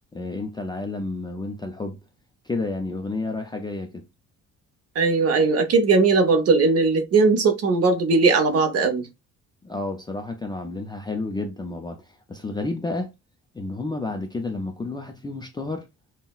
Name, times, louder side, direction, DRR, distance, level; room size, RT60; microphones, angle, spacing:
voice 1, 0.1-2.0 2.4-4.0 9.6-13.1 13.5-15.8, left 2 dB, 15° left, 0.3 m, -31 dB
voice 2, 5.0-9.1, right 4 dB, 50° right, 0.7 m, -19 dB
5.4 x 2.1 x 2.3 m
cardioid pair, 170°, 32 cm